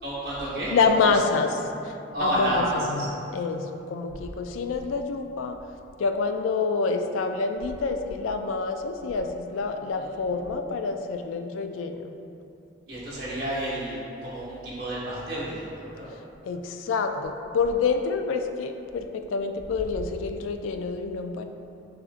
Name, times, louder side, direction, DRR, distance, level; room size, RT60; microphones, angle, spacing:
voice 1, 0.0-0.7 2.1-3.1 10.0-10.3 12.9-16.1, right 1 dB, 55° right, -9 dB, 1.2 m, -30 dB
voice 2, 0.7-5.6 6.0-12.1 16.4-21.5, left 4 dB, 90° left, 6 dB, 0.3 m, -27 dB
6.7 x 2.5 x 2.5 m, 2.7 s
head